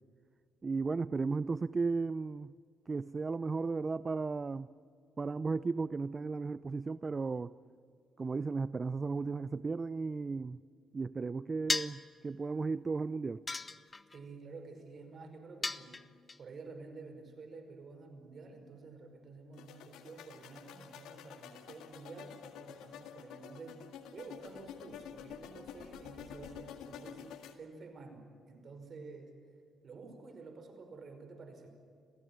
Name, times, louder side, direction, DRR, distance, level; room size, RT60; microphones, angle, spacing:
voice 1, 0.6-2.5 2.9-4.7 5.2-7.6 8.2-10.6 10.9-13.4, right 4 dB, 30° right, 17 dB, 0.5 m, -35 dB
sound 1, 11.7-12.1 13.5-14.2 15.6-16.4, left 3 dB, 25° left, 0.8 m, -35 dB
voice 2, 14.1-16.1 16.4-23.9 24.1-29.4 29.8-31.7, right 3 dB, 50° right, 6 dB, 5.2 m, -50 dB
sound 2, 19.5-27.5, left 9 dB, 90° left, 2.0 m, -49 dB
27.5 x 17.0 x 8.9 m, 2.3 s
cardioid pair, 90°, 0 cm